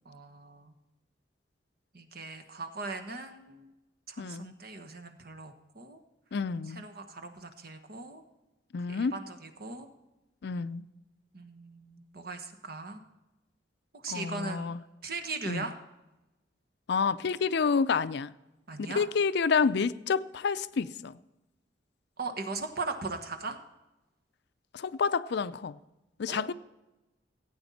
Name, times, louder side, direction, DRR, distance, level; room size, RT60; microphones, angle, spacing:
voice 1, 0.0-0.7 1.9-3.7 4.1-6.0 6.7-8.2 8.9-9.9 11.3-13.0 14.0-14.7 15.0-15.7 18.7-19.0 22.2-23.6 26.3-26.4, right 3 dB, 55° right, 1.2 m, -39 dB
voice 2, 4.2-4.5 6.3-6.8 8.7-9.2 10.4-10.9 14.1-14.8 15.5-15.7 16.9-18.3 18.8-21.2 24.7-25.8 26.2-26.5, left 5 dB, 65° left, 0.4 m, -29 dB
16.5 x 8.9 x 4.2 m
head